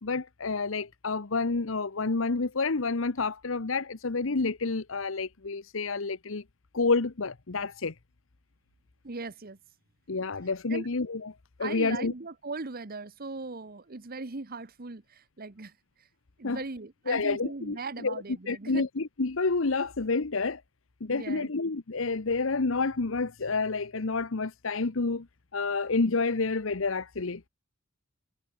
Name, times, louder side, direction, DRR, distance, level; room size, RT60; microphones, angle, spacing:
voice 1, 0.0-6.4 6.7-7.9 10.1-11.3 11.6-12.1 16.4-16.6 17.1-17.8 18.0-18.1 18.5-20.6 21.0-25.3 25.5-27.4, left 3 dB, 75° left, 1.0 m, -29 dB
voice 2, 9.0-9.6 10.7-10.9 11.6-16.1 16.4-18.9 21.1-21.5, right 3 dB, 50° right, 1.2 m, -39 dB
head